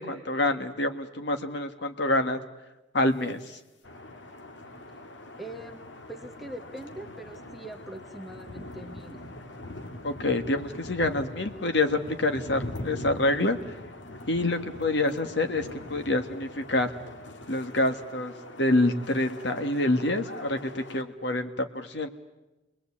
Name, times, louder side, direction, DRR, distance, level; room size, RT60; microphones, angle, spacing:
voice 1, 0.0-2.4 2.9-3.6 10.0-13.7 14.3-16.9 17.5-22.1, left 2 dB, 65° left, 7 dB, 1.6 m, -27 dB
Ambiente - puerto pequeño de noche, 3.8-21.0, left 1 dB, 85° left, 2.0 m, -42 dB
voice 2, 5.4-9.2, right 1 dB, ahead, 4 dB, 1.5 m, -42 dB
29.0 x 21.0 x 8.6 m, 1.1 s
head